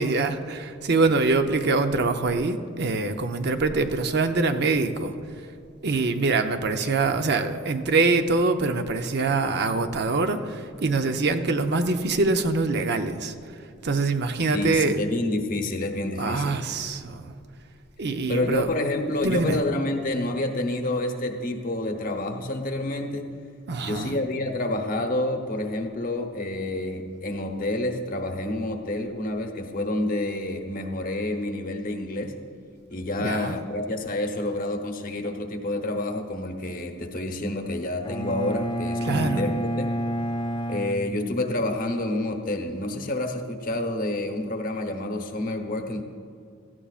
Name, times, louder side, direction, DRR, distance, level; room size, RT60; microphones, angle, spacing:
voice 1, 0.0-5.1 5.8-13.3 13.8-15.0 16.2-17.4 18.0-18.7 19.2-19.6 23.7-24.2 33.2-33.6 39.1-39.4, right 3 dB, 55° right, 7 dB, 0.7 m, -24 dB
voice 2, 14.5-16.6 18.3-23.3 23.8-32.3 32.9-39.9 40.7-46.0, left 1 dB, 45° left, 4 dB, 1.0 m, -28 dB
Bowed string instrument, 38.0-41.9, equal, 25° left, 0.3 m, -30 dB
17.0 x 14.0 x 2.4 m, 2.4 s
head